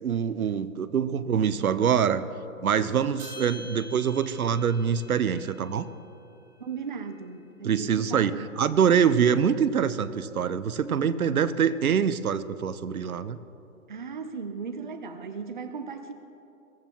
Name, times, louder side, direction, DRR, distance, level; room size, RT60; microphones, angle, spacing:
voice 1, 0.0-2.2 2.6-5.9 7.6-8.3 8.6-13.4, right 7 dB, 75° right, 14 dB, 0.8 m, -24 dB
sound 1, 3.2-7.6, left 1 dB, 10° right, 2.9 m, -48 dB
voice 2, 6.6-8.5 13.9-16.1, right 5 dB, 35° right, 8 dB, 0.6 m, -37 dB
22.5 x 16.0 x 3.0 m, 2.8 s
hypercardioid pair, 165°, 43 cm